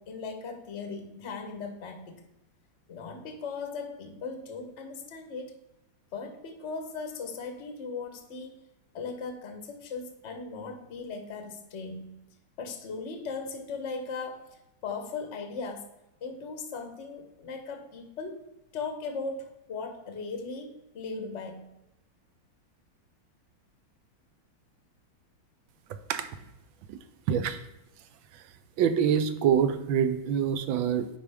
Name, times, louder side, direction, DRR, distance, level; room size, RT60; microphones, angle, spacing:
voice 1, 0.0-2.2 2.9-5.5 6.1-8.5 8.9-12.2 12.6-15.9 16.2-18.4 18.7-21.7, left 4 dB, 50° left, 6 dB, 0.9 m, -38 dB
voice 2, 27.3-27.6 28.8-31.1, right 8 dB, 75° right, 10 dB, 1.3 m, -25 dB
9.7 x 4.6 x 3.4 m, 0.91 s
omnidirectional pair, 2.3 m